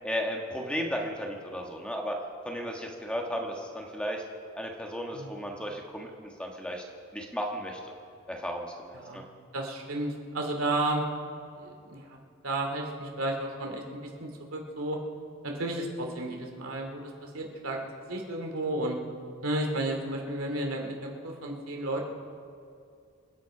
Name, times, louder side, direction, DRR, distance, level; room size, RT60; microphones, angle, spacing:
voice 1, 0.0-2.2 2.4-4.2 4.5-6.8 7.1-7.9 8.3-9.2, equal, 5° left, 1 dB, 1.4 m, -34 dB
voice 2, 8.9-9.2 9.5-11.1 11.6-12.2 12.4-15.0 15.4-19.0 19.4-22.1, right 1 dB, 80° right, 1 dB, 2.5 m, -33 dB
27.5 x 9.5 x 4.9 m, 2.4 s
head